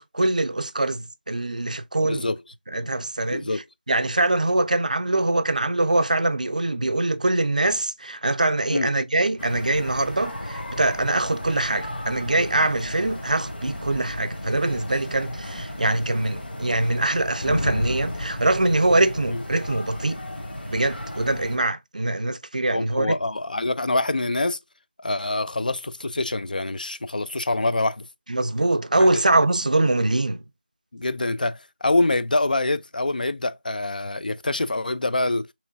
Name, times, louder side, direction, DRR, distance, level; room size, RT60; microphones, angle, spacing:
voice 1, 0.0-2.3 2.7-3.5 3.9-20.2 20.7-23.2 28.3-30.4, right 2 dB, 50° right, 0.4 m, -23 dB
voice 2, 2.0-2.4 3.3-3.6 8.7-8.9 19.3-19.4 22.7-24.6 25.0-28.1 29.0-29.2 30.9-35.5, left 2 dB, 55° left, 0.3 m, -25 dB
sound 1, 9.4-21.6, left 1 dB, 75° left, 1.0 m, -33 dB
3.7 x 3.0 x 2.5 m
figure-of-eight pair, 175°, 5 cm